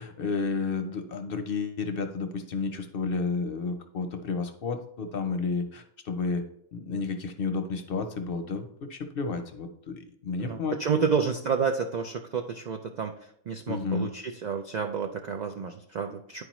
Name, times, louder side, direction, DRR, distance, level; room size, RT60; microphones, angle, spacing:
voice 1, 0.0-6.4 6.7-11.1 13.7-14.1, left 4 dB, 55° left, 7 dB, 0.7 m, -31 dB
voice 2, 10.4-13.1 13.5-16.4, right 6 dB, 70° right, 4 dB, 0.4 m, -30 dB
9.7 x 4.8 x 3.0 m, 0.71 s
omnidirectional pair, 1.3 m